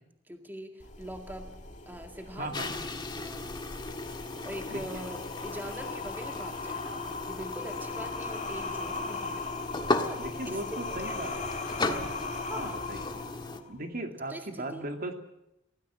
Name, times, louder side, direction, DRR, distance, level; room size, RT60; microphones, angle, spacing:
voice 1, 0.3-1.5 1.9-2.7 3.2-3.5 4.4-9.7 10.0-11.5 12.5-12.8 14.3-14.8, equal, 10° right, 4 dB, 2.1 m, -42 dB
sound 1, 0.8-13.8, left 3 dB, 40° left, 2.3 m, -39 dB
voice 2, 2.4-2.7 4.7-5.0 10.2-11.3 11.9-12.1 12.5-13.2 13.7-15.1, right 1 dB, 50° right, 4 dB, 2.7 m, -38 dB
sound 2, 2.5-13.6, left 2 dB, 25° left, 1.7 m, -36 dB
25.5 x 17.5 x 7.6 m, 0.85 s
head